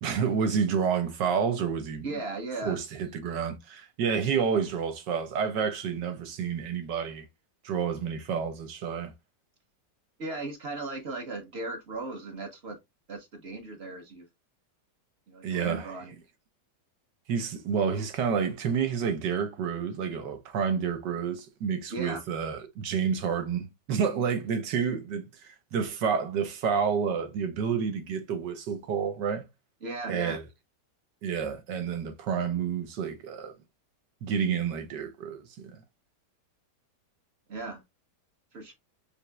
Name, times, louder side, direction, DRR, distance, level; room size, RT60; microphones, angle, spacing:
voice 1, 0.0-2.2 2.6-7.3 7.6-9.1 15.4-15.9 17.3-25.2 25.7-29.5 30.1-30.4 31.2-33.5 34.2-35.8, right 6 dB, 80° right, 1.6 m, -29 dB
voice 2, 2.0-2.8 10.2-12.8 13.1-14.2 15.3-16.1 21.9-22.2 29.8-30.4 37.5-37.8 38.5-38.7, right 3 dB, 40° right, 1.2 m, -37 dB
5.5 x 3.3 x 2.3 m
omnidirectional pair, 1.9 m